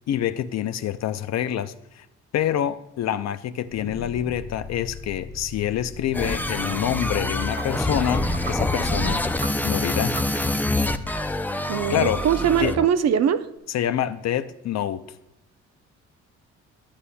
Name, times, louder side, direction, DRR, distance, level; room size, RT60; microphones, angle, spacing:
voice 1, 0.1-2.1 2.3-9.3 9.6-10.2 11.9-12.3 12.6-12.8 13.7-15.0, left 10 dB, 60° left, 0.6 m, -26 dB
sound 1, 3.7-12.8, left 4 dB, 40° left, 1.0 m, -42 dB
sound 2, 6.1-12.9, left 1 dB, 5° left, 0.5 m, -26 dB
sound 3, 6.5-11.5, right 4 dB, 35° right, 0.8 m, -41 dB
voice 2, 11.7-13.5, right 8 dB, 60° right, 0.6 m, -21 dB
11.5 x 8.4 x 2.2 m
cardioid pair, 90°, 30 cm